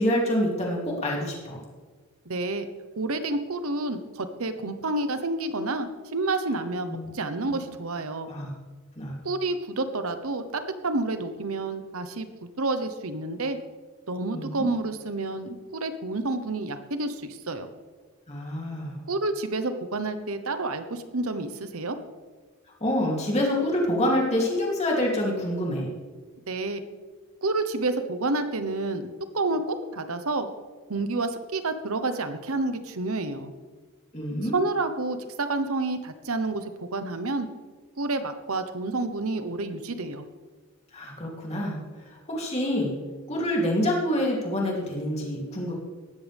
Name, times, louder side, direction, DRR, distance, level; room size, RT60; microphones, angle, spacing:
voice 1, 0.0-1.6 6.9-7.1 7.4-7.6 8.3-8.5 9.0-9.2 14.3-14.7 18.3-18.9 22.8-25.9 34.1-34.5 40.9-41.8 42.1-42.9 43.3-45.7, left 1 dB, 30° left, -2 dB, 3.1 m, -27 dB
voice 2, 2.2-2.7 3.0-8.3 9.2-13.6 14.1-17.7 19.1-22.0 26.5-26.8 27.4-30.5 30.9-33.5 34.5-37.5 38.0-40.3, right 2 dB, 80° right, 9 dB, 1.1 m, -29 dB
18.0 x 14.0 x 3.6 m, 1.4 s
head